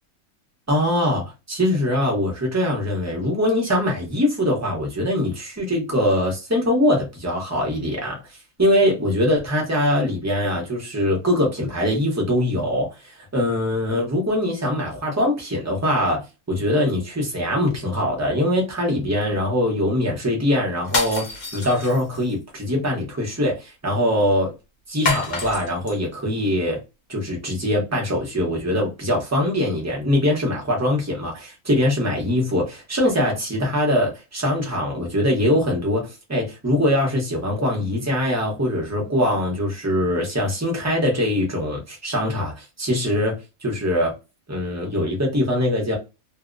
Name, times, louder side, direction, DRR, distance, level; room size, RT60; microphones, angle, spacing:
voice 1, 0.7-8.2 8.6-24.5 24.9-26.8 27.1-43.3 43.6-44.1 44.5-46.0, left 1 dB, 15° right, 0.5 m, -22 dB
sound 1, 20.8-22.3 25.1-26.0, left 3 dB, 40° left, 0.7 m, -27 dB
2.7 x 2.0 x 2.4 m
omnidirectional pair, 1.5 m